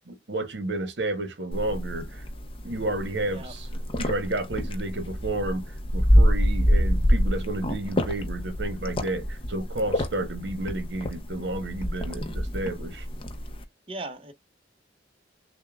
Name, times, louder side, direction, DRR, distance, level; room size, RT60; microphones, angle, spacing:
voice 1, 0.1-2.3 2.6-3.6 4.0-13.0, right 2 dB, 65° right, 1.0 m, -31 dB
sound 1, 1.5-13.6, equal, 30° left, 0.6 m, -26 dB
voice 2, 13.9-14.3, right 2 dB, 30° right, 0.8 m, -37 dB
6.3 x 2.1 x 2.3 m
head